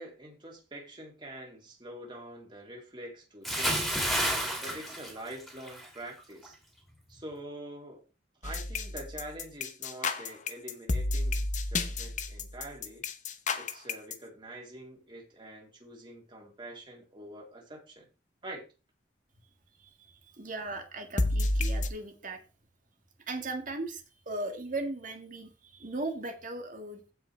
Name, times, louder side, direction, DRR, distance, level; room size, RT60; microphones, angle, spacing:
voice 1, 0.0-4.0 4.6-6.6 7.1-8.0 8.4-13.0 13.5-18.1 18.4-18.6, right 1 dB, 25° right, -1 dB, 3.4 m, -45 dB
Bathtub (filling or washing) / Splash splatter, 3.4-5.9 6.2-6.5, equal, ahead, 2.6 m, -30 dB
sound 1, 8.4-14.2 21.2-21.9, left 2 dB, 45° left, 0.9 m, -30 dB
voice 2, 19.8-22.4 23.3-27.0, right 2 dB, 45° right, 4 dB, 1.8 m, -38 dB
15.0 x 5.5 x 3.4 m, 0.30 s
head